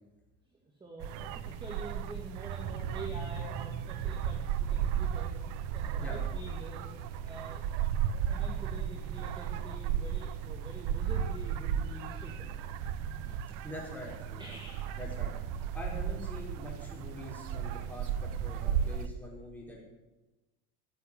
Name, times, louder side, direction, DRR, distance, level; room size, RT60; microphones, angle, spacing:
voice 1, 0.5-5.4 5.7-7.0 7.2-7.6 8.0-12.6 13.2-13.4 14.4-14.9, right 2 dB, 15° right, -1 dB, 2.1 m, -46 dB
sound 1, 1.0-19.1, right 9 dB, 90° right, 1.1 m, -34 dB
voice 2, 13.6-14.4 15.0-15.3 15.7-19.8, left 1 dB, 5° left, -3 dB, 5.2 m, -44 dB
17.0 x 8.4 x 10.0 m, 1.1 s
cardioid pair, 160°, 31 cm